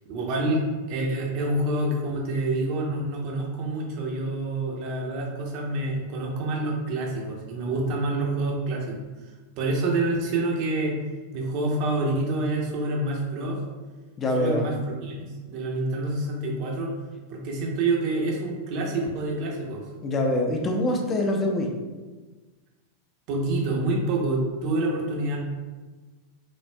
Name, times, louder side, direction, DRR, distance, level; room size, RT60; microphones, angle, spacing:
voice 1, 0.1-9.0 9.6-11.0 11.3-13.6 14.3-16.9 17.3-19.8 23.3-25.4, right 2 dB, 45° right, -1 dB, 0.8 m, -27 dB
voice 2, 14.2-14.7 20.0-21.7, left 1 dB, 25° left, 2 dB, 0.6 m, -24 dB
6.3 x 2.5 x 2.2 m, 1.3 s
figure-of-eight pair, 90°, 0 cm